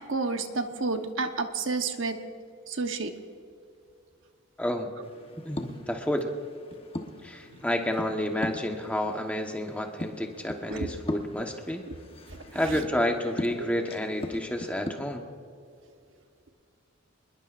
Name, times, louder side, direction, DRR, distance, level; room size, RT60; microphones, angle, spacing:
voice 1, 0.0-2.2 2.7-3.1 10.7-10.9 11.9-12.0 13.6-13.7, right 3 dB, 65° right, 6 dB, 1.1 m, -30 dB
voice 2, 4.6-4.9 5.4-6.3 7.2-11.8 12.5-15.2, left 1 dB, 5° left, 2 dB, 1.2 m, -30 dB
sound 1, 5.0-14.9, left 1 dB, 25° left, 1.2 m, -40 dB
27.0 x 21.0 x 2.6 m, 2.4 s
head